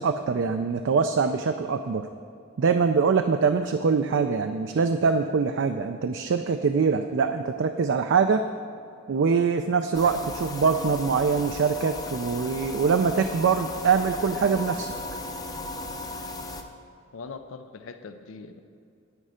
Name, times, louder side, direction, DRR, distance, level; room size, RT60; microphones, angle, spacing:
voice 1, 0.0-2.1 2.6-8.5 9.1-14.9, right 5 dB, 65° right, 7 dB, 0.4 m, -23 dB
sound 1, 9.9-16.6, left 2 dB, 20° left, 0.6 m, -36 dB
voice 2, 17.1-18.6, left 4 dB, 80° left, 9 dB, 0.5 m, -41 dB
9.6 x 9.0 x 5.0 m, 2.5 s
head